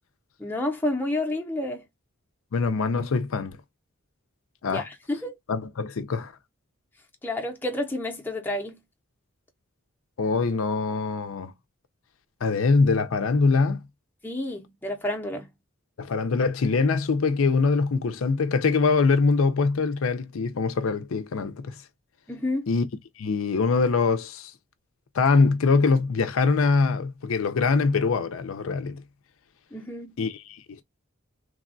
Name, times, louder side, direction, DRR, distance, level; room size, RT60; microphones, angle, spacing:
voice 1, 0.4-1.8 4.7-5.4 7.2-8.8 14.2-15.5 22.3-22.7 29.7-30.1, left 1 dB, 10° left, 0.6 m, -30 dB
voice 2, 2.5-3.6 4.6-4.9 5.5-6.3 10.2-11.5 12.4-13.8 16.0-21.7 22.7-22.8 23.2-24.5 25.1-29.0 30.2-30.8, left 4 dB, 70° left, 0.5 m, -23 dB
3.4 x 2.2 x 2.4 m
head